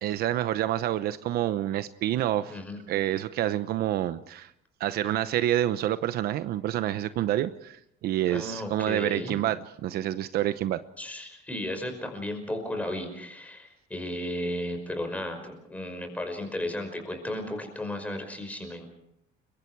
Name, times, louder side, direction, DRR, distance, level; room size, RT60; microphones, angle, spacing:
voice 1, 0.0-2.6 2.9-4.5 4.8-10.8, right 12 dB, 60° right, 12 dB, 0.9 m, -28 dB
voice 2, 8.3-9.4 11.0-18.9, left 1 dB, 10° left, 5 dB, 5.5 m, -34 dB
30.0 x 23.0 x 4.7 m, 0.75 s
cardioid pair, 155°, 18 cm